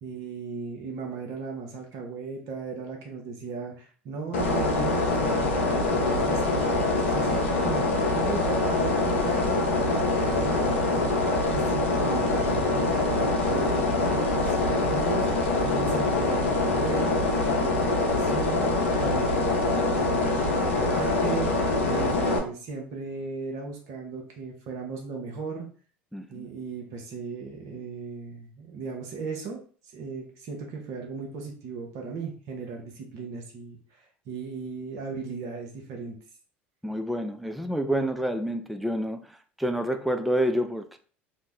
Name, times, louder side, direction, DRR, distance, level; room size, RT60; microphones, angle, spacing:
voice 1, 0.0-25.7 26.3-29.6 29.9-36.2, right 4 dB, 55° right, 0.7 m, -36 dB
sound 1, 4.3-22.4, left 2 dB, 80° left, 0.6 m, -24 dB
voice 2, 26.1-26.5 36.8-39.2 39.6-41.0, equal, ahead, 0.3 m, -28 dB
2.6 x 2.0 x 3.4 m
hypercardioid pair, 70°, 6 cm